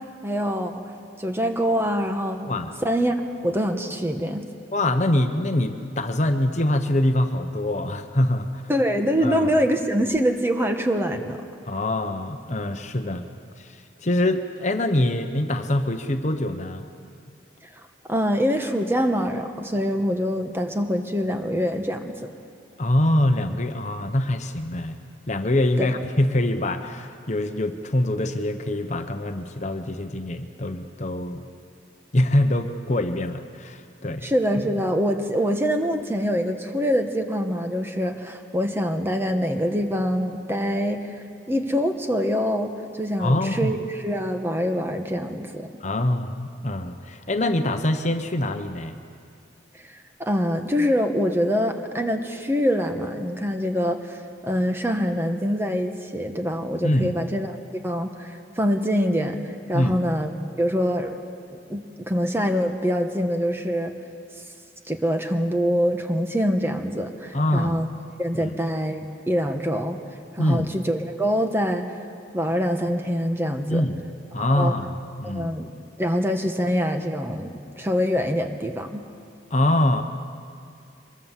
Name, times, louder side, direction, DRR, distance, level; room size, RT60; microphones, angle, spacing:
voice 1, 0.2-0.8 1.2-2.5 2.8-3.1 3.4-4.4 8.7-11.4 18.1-22.1 25.8-25.9 34.2-45.7 49.9-54.2 54.4-57.6 57.8-60.3 60.6-61.1 61.7-63.9 64.9-67.9 68.2-70.0 70.3-71.9 72.3-73.8 74.5-74.7 75.2-75.7 76.0-79.0, equal, 15° right, 5 dB, 1.3 m, -24 dB
voice 2, 4.7-8.7 9.2-9.5 11.6-13.2 13.6-16.8 22.8-25.0 25.3-31.5 32.1-34.3 43.2-43.7 45.8-49.0 56.8-57.1 59.7-59.9 67.3-67.7 70.4-70.7 73.7-74.0 74.3-75.5 79.5-80.0, left 1 dB, 40° left, 7 dB, 1.1 m, -24 dB
23.5 x 22.5 x 7.5 m, 2.3 s
head